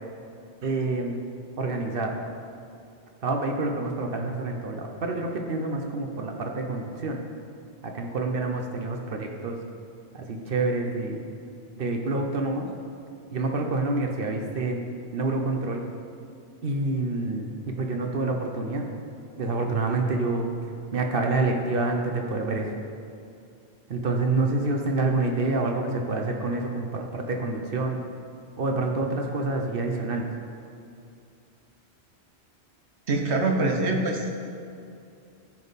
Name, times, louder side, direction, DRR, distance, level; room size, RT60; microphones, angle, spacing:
voice 1, 0.6-1.2 1.6-2.2 3.2-7.2 7.8-9.6 10.1-11.2 11.8-12.7 13.3-14.8 15.1-15.8 16.6-18.9 19.4-20.5 20.9-22.7 23.9-28.0 28.6-30.3, right 3 dB, 60° right, 2 dB, 0.9 m, -27 dB
voice 2, 33.1-34.3, right 2 dB, 80° right, 2 dB, 1.3 m, -24 dB
13.5 x 5.3 x 4.1 m, 2.5 s
omnidirectional pair, 1.1 m